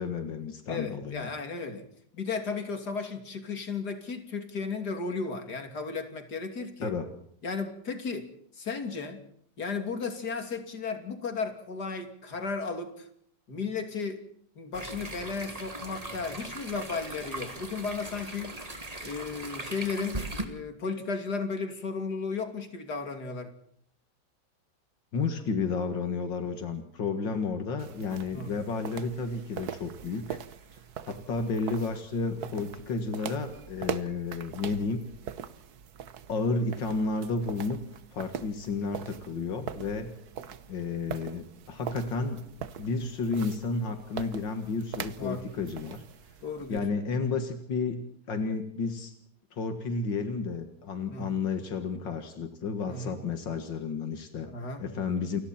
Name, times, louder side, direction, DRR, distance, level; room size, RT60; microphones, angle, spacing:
voice 1, 0.0-1.3 6.8-7.1 25.1-30.4 31.1-35.0 36.3-37.8 38.1-40.1 40.7-46.0 46.7-49.1 49.5-54.5 54.8-55.4, left 4 dB, 85° left, 7 dB, 2.5 m, -32 dB
voice 2, 0.7-1.8 2.1-6.9 7.4-9.2 9.6-13.1 13.5-14.2 14.5-18.6 19.0-23.5 28.3-28.5 45.2-45.4 46.4-46.8 51.1-51.3 52.9-53.2 54.5-54.9, left 4 dB, 60° left, 7 dB, 3.3 m, -34 dB
sound 1, 14.7-20.5, right 2 dB, 20° right, 2.6 m, -39 dB
sound 2, 27.8-46.8, right 8 dB, 60° right, 1.5 m, -42 dB
29.5 x 23.0 x 4.4 m, 0.67 s
omnidirectional pair, 1.9 m